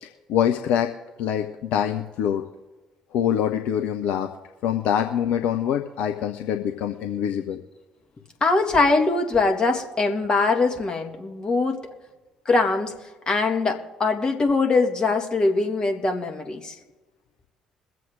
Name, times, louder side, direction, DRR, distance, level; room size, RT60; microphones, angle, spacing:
voice 1, 0.0-0.9 1.2-2.4 3.1-4.3 4.6-7.6, left 9 dB, 60° left, 5 dB, 0.8 m, -24 dB
voice 2, 8.4-11.8 12.5-12.9 13.3-16.7, left 3 dB, 30° left, 3 dB, 2.3 m, -22 dB
22.5 x 7.7 x 3.7 m, 1.2 s
figure-of-eight pair, 50°, 3 cm